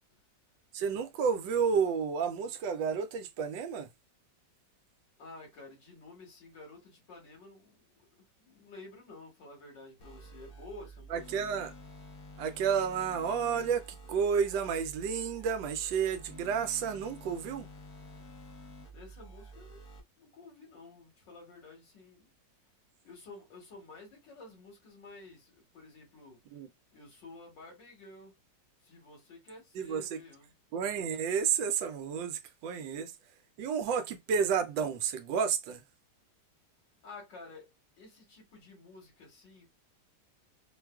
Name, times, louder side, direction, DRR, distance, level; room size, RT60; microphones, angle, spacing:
voice 1, 0.7-3.9 11.1-11.7 12.4-17.7 26.5-26.7 29.7-30.2 30.7-33.1 33.6-35.8, right 6 dB, 90° right, 1.4 m, -31 dB
voice 2, 5.2-7.9 8.4-11.2 18.9-19.8 20.2-22.3 23.0-26.4 26.9-28.3 28.8-30.5 37.0-37.7 38.0-39.7, left 2 dB, 80° left, 2.5 m, -51 dB
sound 1, 10.0-20.0, equal, 55° left, 1.3 m, -50 dB
4.6 x 2.3 x 2.3 m
omnidirectional pair, 1.9 m